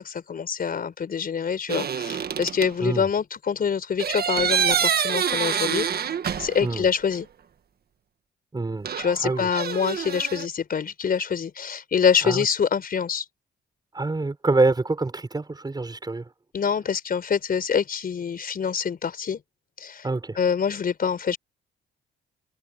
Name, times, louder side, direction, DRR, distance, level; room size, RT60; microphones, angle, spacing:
voice 1, 0.0-5.9 6.4-7.3 9.0-13.2 16.5-19.4 19.8-20.1 20.3-21.4, left 7 dB, 45° left, 4.8 m, -25 dB
sound 1, 1.7-2.7 4.0-6.8 7.1-7.2 8.8-10.5, right 8 dB, 50° right, 1.6 m, -26 dB
voice 2, 8.5-8.9 9.2-9.5 12.2-12.4 13.9-16.3 20.0-20.4, right 3 dB, 20° right, 6.6 m, -25 dB
cardioid pair, 90°, 20 cm